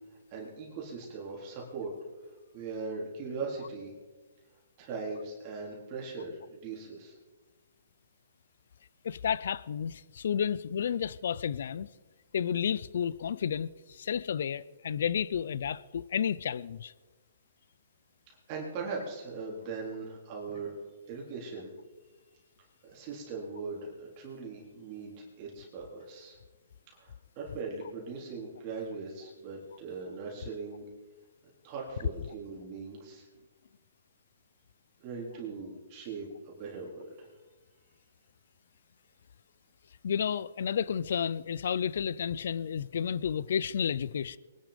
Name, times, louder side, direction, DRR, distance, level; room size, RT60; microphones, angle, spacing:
voice 1, 0.1-1.9 2.2-3.9 4.8-7.1 18.3-20.7 21.1-21.7 22.8-26.4 26.9-30.8 31.6-33.3 35.0-37.3, right 4 dB, 35° right, 4.0 m, -40 dB
voice 2, 9.0-11.9 12.3-16.9 40.0-44.4, left 8 dB, 65° left, 0.5 m, -31 dB
23.0 x 11.0 x 5.3 m
hypercardioid pair, 150°, 0 cm